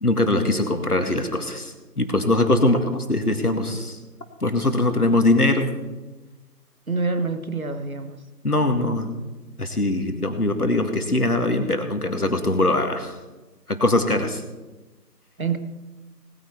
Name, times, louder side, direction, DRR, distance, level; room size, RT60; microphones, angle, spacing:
voice 1, 0.0-4.0 4.4-5.7 8.4-9.1 9.6-13.1 13.7-14.4, left 2 dB, 65° left, 2.0 m, -22 dB
voice 2, 6.9-8.2 15.4-15.6, right 4 dB, 55° right, 1.2 m, -26 dB
19.0 x 9.6 x 4.6 m
figure-of-eight pair, 175°, 49 cm